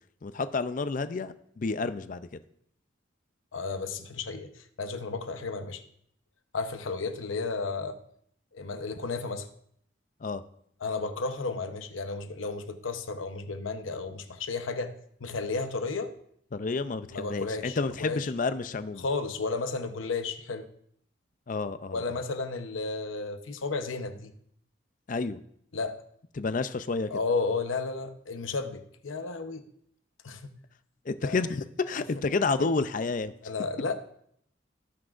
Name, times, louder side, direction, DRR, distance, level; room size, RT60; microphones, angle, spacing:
voice 1, 0.2-2.4 10.2-10.4 16.5-19.0 21.5-22.0 25.1-25.4 26.4-27.1 31.1-33.3, left 4 dB, 45° left, 12 dB, 0.4 m, -30 dB
voice 2, 3.5-5.8 6.5-8.0 8.5-9.5 10.8-14.9 15.2-16.1 17.1-18.3 19.0-20.6 21.9-24.3 25.7-26.0 27.1-29.6 30.2-30.5 31.2-31.4 33.4-33.9, left 4 dB, 90° left, 8 dB, 0.9 m, -33 dB
17.5 x 6.0 x 2.5 m, 0.68 s
head